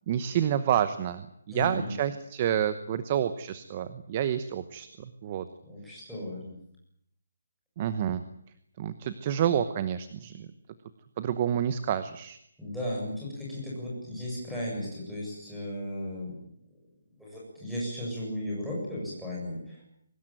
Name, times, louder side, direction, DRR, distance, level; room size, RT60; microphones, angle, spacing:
voice 1, 0.1-5.5 7.8-8.2 8.8-10.5 11.2-12.4, right 9 dB, 20° right, 12 dB, 0.9 m, -29 dB
voice 2, 1.5-1.9 5.7-6.6 12.6-16.3 17.2-19.8, left 1 dB, ahead, -6 dB, 7.7 m, -35 dB
23.5 x 20.5 x 9.1 m, 0.73 s
hypercardioid pair, 180°, 0 cm